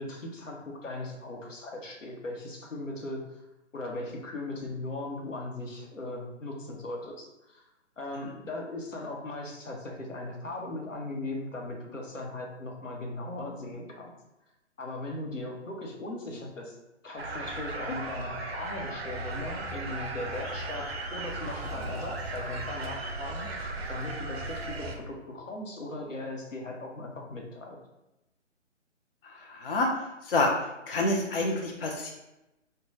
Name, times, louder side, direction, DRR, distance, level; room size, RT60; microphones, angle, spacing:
voice 1, 0.0-3.4 3.7-7.7 8.0-14.1 14.8-16.8 17.0-23.5 23.9-27.8, left 2 dB, 85° left, 0 dB, 0.8 m, -38 dB
sound 1, 17.2-25.0, right 2 dB, 55° right, 0.5 m, -36 dB
voice 2, 29.4-29.9 30.3-30.5 30.9-32.1, left 2 dB, 50° left, 1 dB, 0.4 m, -27 dB
3.2 x 2.2 x 2.6 m, 0.94 s
figure-of-eight pair, 145°, 37 cm